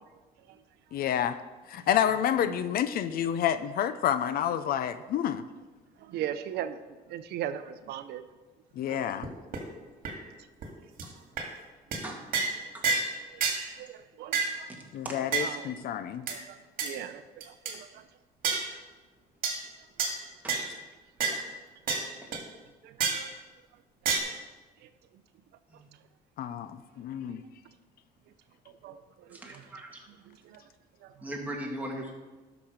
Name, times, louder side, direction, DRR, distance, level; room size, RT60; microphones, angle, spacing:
voice 1, 0.9-1.4 1.7-5.4 8.8-9.3 14.9-16.3 26.4-27.4, left 9 dB, 60° left, 13 dB, 0.6 m, -29 dB
voice 2, 6.0-6.8 7.1-8.2 8.9-9.1 13.3-13.4 13.8-14.7 15.4-15.9 16.3-16.6 16.8-17.9 22.8-23.3 28.8-29.0 30.5-30.6, right 10 dB, 75° right, 11 dB, 0.6 m, -38 dB
sound 1, 9.2-9.3 9.5-9.6 10.0-10.1 10.6-10.7 11.0-11.1 11.4-11.5 11.9-12.0 12.3-12.5 12.8-13.1 13.4-13.6 14.3-14.5 15.3-15.5 16.3-16.4 16.8-16.9 17.4-17.7 18.4-18.7 19.4-19.6 20.0-20.1 20.5-20.7 21.2-21.4 21.9-22.0 22.3-22.4 23.0-23.3 24.0-24.2, right 5 dB, 55° right, 2.0 m, -28 dB
voice 3, 14.7-15.2 20.4-20.6 22.2-22.3 25.7-25.8 29.3-30.0 31.2-32.1, right 1 dB, 10° right, -1 dB, 2.1 m, -39 dB
12.0 x 6.0 x 5.1 m, 1.2 s
cardioid pair, 110°, 17 cm